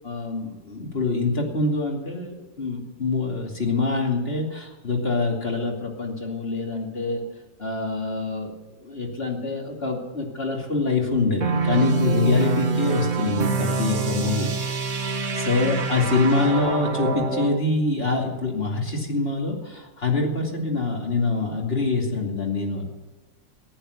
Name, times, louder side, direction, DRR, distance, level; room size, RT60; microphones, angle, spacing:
voice 1, 0.0-7.2 7.6-14.5 14.8-22.9, left 3 dB, 30° left, 0 dB, 2.8 m, -25 dB
sound 1, 11.4-17.6, right 4 dB, 45° right, 1.5 m, -26 dB
14.5 x 10.5 x 7.9 m, 1.2 s
omnidirectional pair, 2.0 m